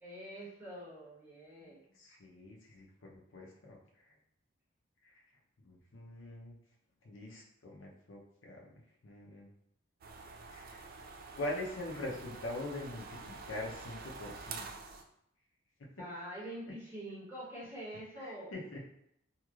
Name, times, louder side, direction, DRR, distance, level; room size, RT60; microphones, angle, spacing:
voice 1, 0.0-1.8 16.0-18.5, right 1 dB, 10° right, -8 dB, 1.1 m, -45 dB
voice 2, 1.6-3.8 5.6-6.5 7.0-8.6 9.0-9.5 10.5-10.9 11.4-14.6 15.8-15.9 18.2-18.8, left 1 dB, 70° left, -2 dB, 0.7 m, -43 dB
sound 1, 10.0-15.0, right 4 dB, 45° right, 0.3 m, -47 dB
3.0 x 2.8 x 2.4 m, 0.75 s
head